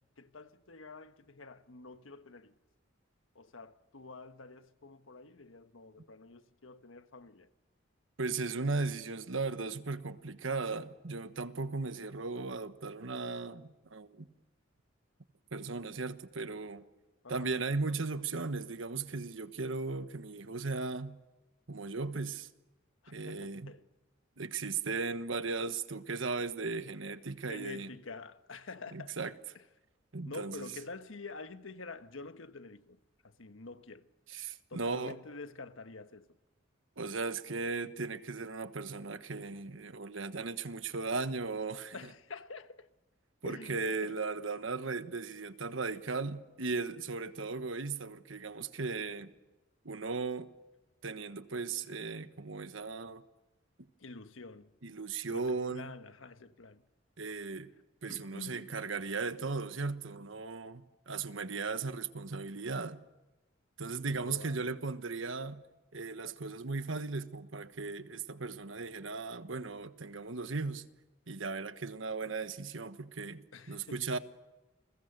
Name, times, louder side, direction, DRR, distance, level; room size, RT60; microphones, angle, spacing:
voice 1, 0.0-2.5 3.3-7.5 17.2-17.7 23.0-23.8 27.4-29.2 29.5-29.6 30.2-34.1 34.7-36.4 41.9-42.9 43.4-44.2 54.0-54.7 55.3-56.8 58.1-58.8 64.0-64.7 73.5-74.0, left 3 dB, 80° left, 1.3 m, -48 dB
voice 2, 8.2-14.3 15.5-16.8 17.3-21.2 21.7-22.5 23.1-23.7 24.4-27.9 28.9-29.3 30.1-30.7 34.3-35.1 37.0-41.9 43.4-49.3 49.8-50.5 51.0-53.2 54.8-55.9 57.2-57.7 58.0-63.0 63.8-65.6 65.9-70.8 71.3-74.2, right 4 dB, 75° right, 1.3 m, -37 dB
29.5 x 21.5 x 6.8 m
head